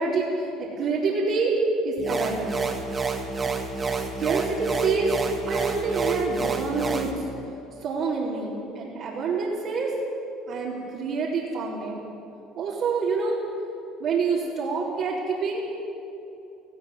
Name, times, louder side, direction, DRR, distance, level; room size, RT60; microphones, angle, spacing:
voice 1, 0.0-1.6 1.8-2.6 3.9-5.1 5.4-7.2 7.8-9.9 10.5-12.1 12.5-13.4 14.0-15.6, right 4 dB, 60° right, -7 dB, 4.5 m, -27 dB
sound 1, 2.0-7.1, right 4 dB, 30° right, 2.8 m, -29 dB
18.5 x 15.5 x 9.5 m, 2.8 s
supercardioid pair, 90°, 0 cm